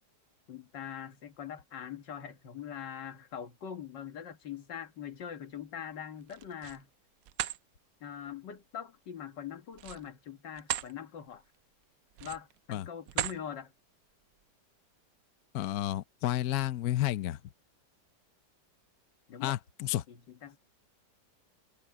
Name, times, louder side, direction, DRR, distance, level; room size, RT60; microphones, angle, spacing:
voice 1, 0.5-6.9 8.0-11.4 12.2-13.7 19.3-19.6 20.1-20.6, left 8 dB, 90° left, 2.2 m, -43 dB
sound 1, 6.2-6.8 7.2-7.6 9.7-10.9 11.4-11.6 12.1-12.6 13.1-13.4, right 12 dB, 70° right, 0.9 m, -36 dB
voice 2, 15.5-17.4 19.4-20.0, left 14 dB, 65° left, 1.1 m, -31 dB
omnidirectional pair, 1.9 m